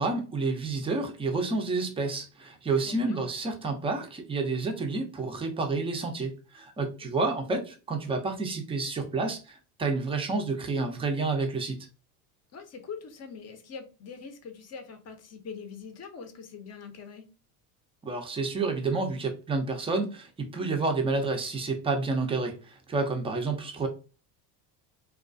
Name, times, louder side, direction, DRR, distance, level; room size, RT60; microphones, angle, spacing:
voice 1, 0.0-11.8 18.0-23.9, right 3 dB, 10° right, 4 dB, 0.4 m, -29 dB
voice 2, 2.8-3.2 6.8-6.9 12.5-17.3, left 5 dB, 35° left, 7 dB, 0.6 m, -43 dB
2.3 x 2.2 x 2.5 m, 0.33 s
supercardioid pair, 85°, 49 cm